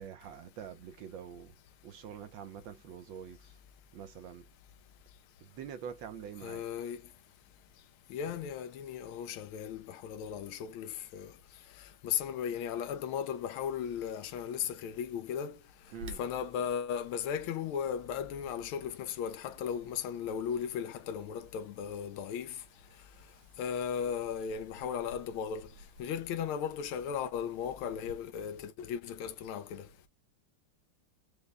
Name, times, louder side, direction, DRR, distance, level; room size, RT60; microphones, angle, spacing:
voice 1, 0.0-1.6 1.8-3.6 3.9-4.5 5.4-6.7 15.9-16.2, right 8 dB, 75° right, 1.3 m, -45 dB
voice 2, 6.4-7.0 8.1-11.3 12.0-15.6 16.2-22.6 23.6-25.7 26.0-29.9, left 8 dB, 80° left, 1.5 m, -36 dB
Wind, 15.9-28.1, equal, 90° right, 1.8 m, -56 dB
5.1 x 2.2 x 3.3 m
omnidirectional pair, 2.3 m